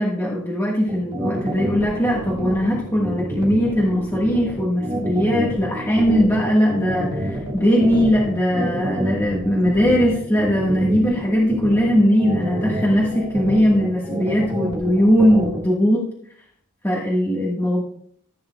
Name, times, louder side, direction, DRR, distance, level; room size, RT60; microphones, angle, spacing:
voice 1, 0.0-16.1 16.8-17.8, equal, 10° left, -5 dB, 1.4 m, -19 dB
sound 1, 0.9-15.6, equal, 20° right, 1.6 m, -27 dB
14.5 x 8.5 x 2.3 m, 0.64 s
head